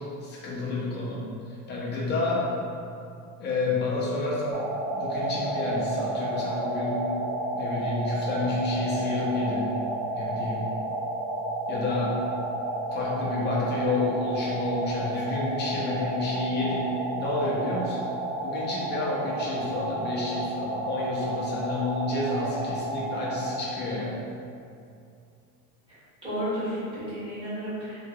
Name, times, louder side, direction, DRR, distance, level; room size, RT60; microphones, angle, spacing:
voice 1, 0.0-2.5 3.4-4.7 4.9-7.1 7.5-9.8 10.1-10.7 11.7-12.2 12.9-18.1 18.4-24.1, left 2 dB, 30° left, -5 dB, 0.6 m, -30 dB
sound 1, 4.5-23.7, right 1 dB, 35° right, 0.4 m, -31 dB
voice 2, 25.9-28.0, equal, 15° right, -13 dB, 1.5 m, -33 dB
3.2 x 2.9 x 2.2 m, 2.5 s
cardioid pair, 150°, 36 cm